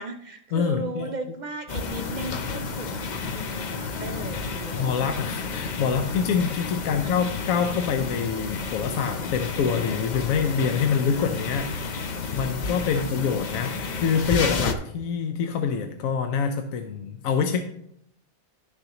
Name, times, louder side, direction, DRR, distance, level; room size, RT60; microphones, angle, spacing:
voice 1, 0.0-2.9 3.3-4.9 6.9-7.2 12.9-13.1, right 2 dB, 60° right, 6 dB, 0.4 m, -36 dB
voice 2, 0.5-1.1 4.8-17.6, left 6 dB, 80° left, 6 dB, 1.1 m, -26 dB
sound 1, 1.7-14.7, left 4 dB, 50° left, 0.5 m, -31 dB
11.5 x 6.5 x 2.9 m, 0.75 s
omnidirectional pair, 1.4 m